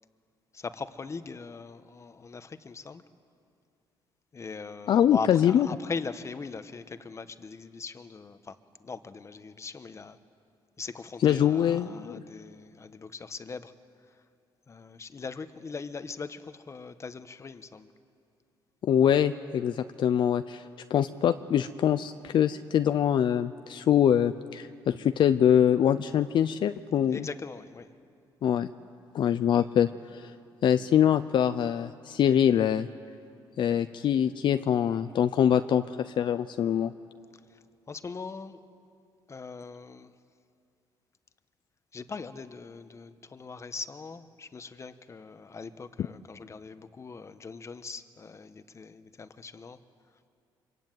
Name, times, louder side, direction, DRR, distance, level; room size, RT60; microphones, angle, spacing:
voice 1, 0.5-3.0 4.3-10.2 10.8-13.7 14.7-17.9 27.1-27.9 37.5-37.6 37.9-38.6 39.3-40.1 41.9-49.8, left 4 dB, 35° left, 11 dB, 1.3 m, -40 dB
voice 2, 4.9-5.7 11.2-12.2 18.8-27.3 28.4-28.7 29.1-30.3 30.6-32.9 33.6-36.9, left 9 dB, 60° left, 10 dB, 0.7 m, -24 dB
25.0 x 23.0 x 9.2 m, 2.5 s
cardioid pair, 95°, 9 cm